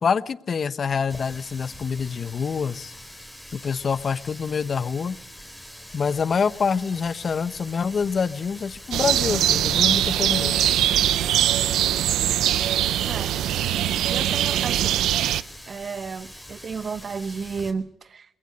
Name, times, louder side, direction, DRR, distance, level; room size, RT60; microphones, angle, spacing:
voice 1, 0.0-2.9 3.5-5.2 5.9-10.6, left 6 dB, 45° left, 16 dB, 1.0 m, -26 dB
Water tap faucet, 1.1-17.7, left 1 dB, ahead, 3.9 m, -44 dB
sound 1, 8.9-15.4, right 11 dB, 80° right, 0.8 m, -22 dB
voice 2, 14.1-15.0 15.7-18.2, right 5 dB, 45° right, 14 dB, 1.0 m, -32 dB
22.0 x 21.5 x 6.6 m, 0.76 s
cardioid pair, 90°, 0 cm